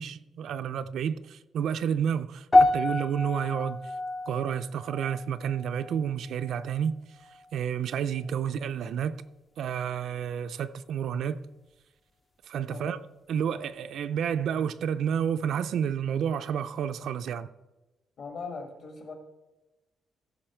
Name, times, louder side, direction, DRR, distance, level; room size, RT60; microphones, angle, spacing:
voice 1, 0.0-3.8 4.3-7.0 7.5-9.2 9.6-11.4 12.5-13.0 13.3-17.5, right 8 dB, 60° right, 0.4 m, -30 dB
sound 1, 2.5-6.9 7.2-7.6 8.2-8.3, left 2 dB, 20° left, 0.5 m, -28 dB
voice 2, 12.7-13.0 18.2-19.1, left 4 dB, 50° left, 1.8 m, -40 dB
15.0 x 5.7 x 4.4 m
cardioid pair, 180°, 0 cm